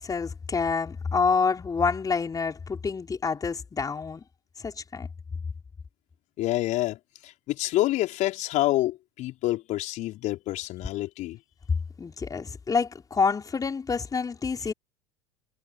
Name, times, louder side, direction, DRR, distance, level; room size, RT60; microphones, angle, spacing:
voice 1, 0.0-4.2 4.6-5.1 12.0-14.7, left 5 dB, 20° left, 5.0 m, -27 dB
voice 2, 6.4-7.0 7.2-11.4, left 16 dB, 50° left, 4.4 m, -27 dB
figure-of-eight pair, 75°, 16 cm